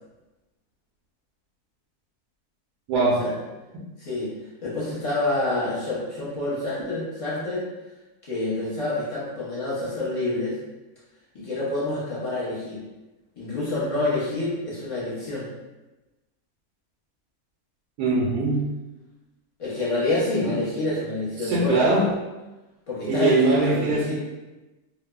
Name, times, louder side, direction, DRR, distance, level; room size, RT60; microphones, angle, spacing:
voice 1, 2.9-3.2 18.0-18.7 20.3-20.5 21.4-22.1 23.1-24.2, right 2 dB, 80° right, -4 dB, 1.1 m, -21 dB
voice 2, 4.0-4.3 4.6-7.6 8.3-10.5 11.3-12.8 13.4-15.5 19.6-21.8 22.9-24.1, left 2 dB, 55° left, -8 dB, 0.3 m, -27 dB
3.0 x 2.0 x 2.2 m, 1.1 s
omnidirectional pair, 1.6 m